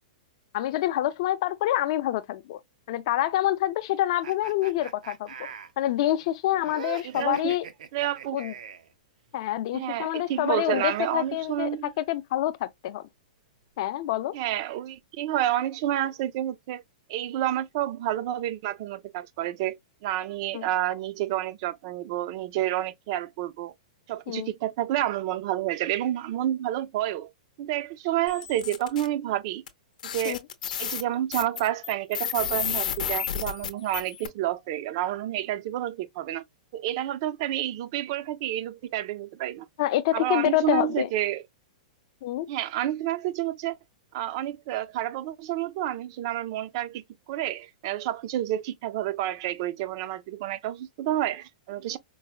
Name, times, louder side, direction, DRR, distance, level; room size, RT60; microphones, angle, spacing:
voice 1, 0.5-2.6 2.9-5.3 5.8-7.7 8.3-8.5 9.3-11.7 12.0-13.0 13.8-14.3 20.5-20.7 24.3-24.5 30.2-30.4 39.8-41.1 42.2-42.5, left 14 dB, 45° left, 0.5 m, -27 dB
sound 1, 4.2-8.9 10.1-11.8, right 8 dB, 80° right, 0.6 m, -43 dB
voice 2, 7.0-7.5 7.9-8.4 9.7-11.9 14.3-16.8 17.1-23.7 24.1-27.3 27.6-29.6 30.0-30.4 30.8-36.4 36.7-39.7 40.1-41.4 42.5-43.8 44.1-52.0, right 13 dB, 40° right, 0.4 m, -29 dB
sound 2, 28.3-29.1 29.7-29.8 30.0-34.3, left 9 dB, 85° left, 0.6 m, -32 dB
4.6 x 2.1 x 2.3 m
supercardioid pair, 170°, 4 cm